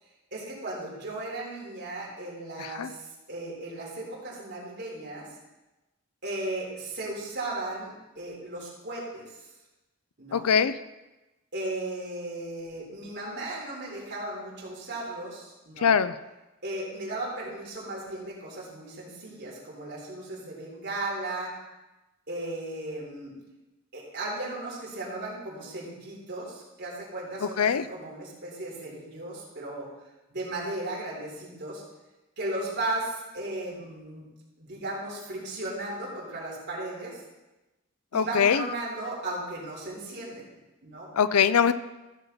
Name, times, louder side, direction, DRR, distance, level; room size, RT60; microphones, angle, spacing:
voice 1, 0.3-5.3 6.2-9.4 10.2-10.5 11.5-16.0 16.6-21.5 22.3-23.3 23.9-29.9 30.3-31.8 32.4-34.3 34.6-37.2 38.1-40.5 40.8-41.1, right 2 dB, 50° right, -5 dB, 3.8 m, -36 dB
voice 2, 2.6-2.9 10.3-10.8 15.8-16.1 27.6-27.9 38.1-38.7 41.1-41.7, left 7 dB, 90° left, 14 dB, 0.5 m, -22 dB
14.5 x 6.8 x 4.0 m, 1.1 s
head